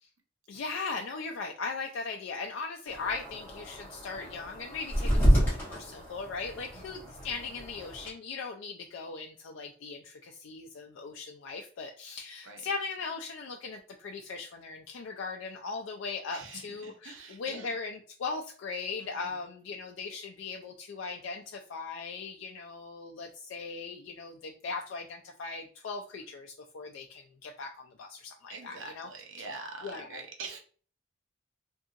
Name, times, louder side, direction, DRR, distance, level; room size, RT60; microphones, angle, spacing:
voice 1, 0.5-29.1 29.4-30.2, left 4 dB, 75° left, 2 dB, 0.3 m, -39 dB
sound 1, 2.9-8.1, equal, 10° left, 1.0 m, -29 dB
voice 2, 6.7-7.0 12.4-12.6 16.3-17.7 19.0-19.4 28.5-30.6, right 4 dB, 80° right, 2 dB, 0.7 m, -44 dB
2.7 x 2.6 x 2.4 m, 0.42 s
head